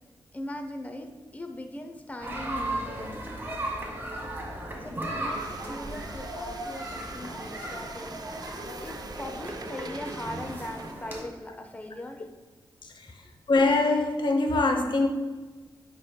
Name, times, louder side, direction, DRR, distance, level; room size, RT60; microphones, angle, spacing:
voice 1, 0.3-3.4 4.8-8.2 8.8-12.3, left 1 dB, 20° left, 5 dB, 0.6 m, -40 dB
sound 1, 2.2-11.2, right 1 dB, 25° right, 1.3 m, -36 dB
sound 2, 5.3-10.9, right 4 dB, 50° right, 0.4 m, -44 dB
voice 2, 13.5-15.1, left 3 dB, 65° left, 5 dB, 0.7 m, -23 dB
8.7 x 5.1 x 2.2 m, 1.3 s
wide cardioid pair, 85°, 8 cm